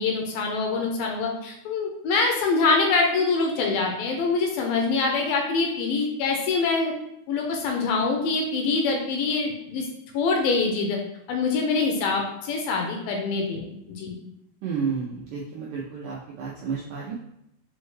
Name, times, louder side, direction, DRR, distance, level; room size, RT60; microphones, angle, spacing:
voice 1, 0.0-6.9 7.3-9.9 10.1-11.0 11.3-14.1, left 4 dB, 80° left, 1 dB, 2.2 m, -24 dB
voice 2, 14.6-17.1, right 6 dB, 80° right, -5 dB, 1.9 m, -31 dB
6.3 x 2.3 x 3.1 m, 0.80 s
omnidirectional pair, 4.4 m